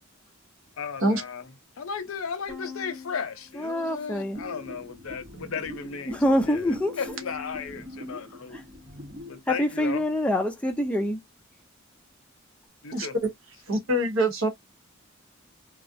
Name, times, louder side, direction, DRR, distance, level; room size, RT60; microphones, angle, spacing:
voice 1, 0.8-8.6 9.3-10.0 12.8-13.2, left 6 dB, 80° left, 0.6 m, -35 dB
Bowed string instrument, 2.5-4.9 5.3-6.1 7.1-9.6, left 5 dB, 15° right, 1.0 m, -47 dB
voice 2, 3.6-4.4 6.1-7.0 8.5-8.6 9.5-11.2, left 1 dB, 5° left, 0.5 m, -25 dB
sound 1, 4.3-9.4, left 1 dB, 40° right, 0.7 m, -43 dB
voice 3, 13.7-14.5, right 1 dB, 75° right, 0.9 m, -24 dB
2.3 x 2.0 x 2.6 m
head